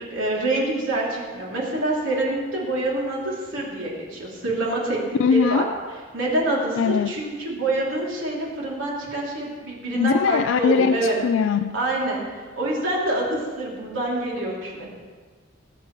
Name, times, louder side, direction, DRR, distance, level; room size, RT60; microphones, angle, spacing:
voice 1, 0.0-5.0 5.3-5.6 6.1-11.2 11.7-14.9, right 2 dB, 90° right, -4 dB, 3.1 m, -26 dB
voice 2, 5.2-5.7 6.8-7.1 9.9-11.7, left 6 dB, 70° left, 10 dB, 0.3 m, -21 dB
20.0 x 8.6 x 3.2 m, 1.5 s
head